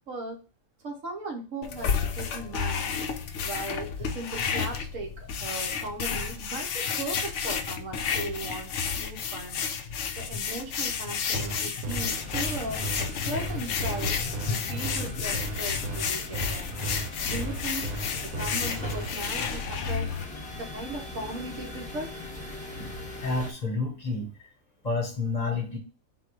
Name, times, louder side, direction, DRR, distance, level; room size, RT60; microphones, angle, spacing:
voice 1, 0.1-0.4 0.8-2.9 3.4-8.7 9.0-9.6 10.2-14.2 14.4-16.7 17.2-17.9 18.2-20.1 20.6-22.1, right 2 dB, 65° right, 2 dB, 1.3 m, -37 dB
sound 1, 1.6-20.2, left 6 dB, 65° left, 0.8 m, -31 dB
sound 2, 11.3-19.1, right 2 dB, 80° right, 1.3 m, -34 dB
sound 3, 12.0-23.5, left 2 dB, 5° left, 0.6 m, -41 dB
voice 2, 23.2-24.5 24.8-25.8, left 3 dB, 30° left, 1 dB, 0.9 m, -30 dB
4.1 x 2.4 x 4.7 m, 0.34 s
omnidirectional pair, 1.5 m